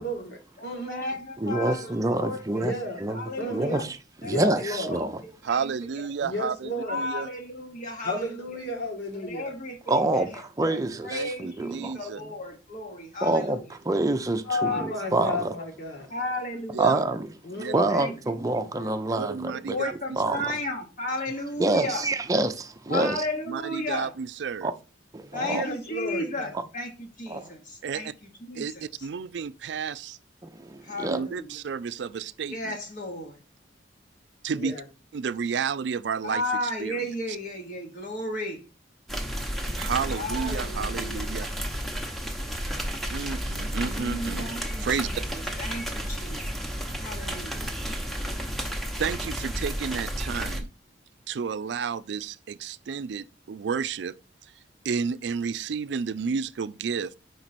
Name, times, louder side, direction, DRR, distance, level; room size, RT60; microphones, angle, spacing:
voice 1, 0.0-1.0 2.6-3.0 3.4-3.9 4.2-5.0 6.2-7.0 8.0-9.5 14.4-16.1 17.4-18.2 25.4-26.5 34.5-34.8, left 1 dB, 65° left, 1.6 m, -32 dB
voice 2, 0.6-2.7 3.1-3.9 4.2-4.5 4.9-6.1 6.8-8.5 9.1-13.7 14.6-15.3 16.1-17.0 17.9-18.9 19.4-22.1 22.9-24.1 25.3-28.1 28.4-29.1 30.8-31.6 32.5-33.4 36.2-38.6 40.1-41.3 43.9-47.7, left 1 dB, 45° left, 1.0 m, -35 dB
voice 3, 1.4-2.7 3.0-4.0 4.2-5.1 9.9-12.0 13.2-13.6 13.9-15.5 16.8-17.3 17.7-19.8 20.2-20.4 21.6-23.2 24.6-24.7 25.1-25.6 27.3-27.5 30.4-31.2, right 2 dB, 20° right, 0.5 m, -26 dB
voice 4, 5.4-7.3 11.1-11.3 11.7-12.2 16.7-16.9 17.6-17.7 19.2-19.9 20.3-20.5 22.9-23.1 23.5-24.7 27.8-28.1 28.5-30.2 31.1-32.8 34.4-34.7 35.1-36.4 36.8-37.0 39.8-41.5 43.1-44.5 44.8-45.2 49.0-50.7 51.3-54.1 54.4-57.1, right 6 dB, 70° right, 0.4 m, -31 dB
sound 1, 39.1-50.6, equal, ahead, 0.8 m, -32 dB
5.2 x 4.5 x 4.1 m
head